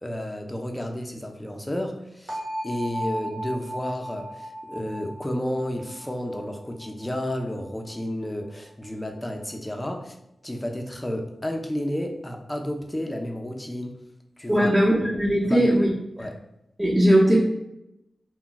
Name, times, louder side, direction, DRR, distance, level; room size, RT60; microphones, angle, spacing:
voice 1, 0.0-10.2 10.4-14.0 14.4-14.7 15.4-15.7 16.2-16.4, left 1 dB, 15° left, 3 dB, 0.5 m, -31 dB
sound 1, 2.3-8.1, equal, 55° right, 0.9 m, -36 dB
voice 2, 14.5-15.9 16.8-17.4, equal, 15° right, -8 dB, 0.8 m, -19 dB
2.2 x 2.2 x 3.8 m, 0.83 s
cardioid pair, 55°, 0 cm